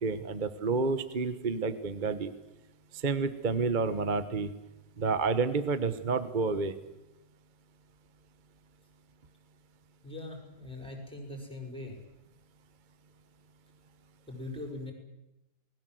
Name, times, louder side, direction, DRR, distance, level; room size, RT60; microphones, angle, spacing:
voice 1, 0.0-2.3 2.9-4.5 5.0-6.7, right 4 dB, 30° right, 12 dB, 1.1 m, -29 dB
voice 2, 10.0-12.0 14.3-14.9, left 2 dB, ahead, 2 dB, 5.8 m, -41 dB
28.5 x 20.5 x 7.8 m, 0.91 s
omnidirectional pair, 2.2 m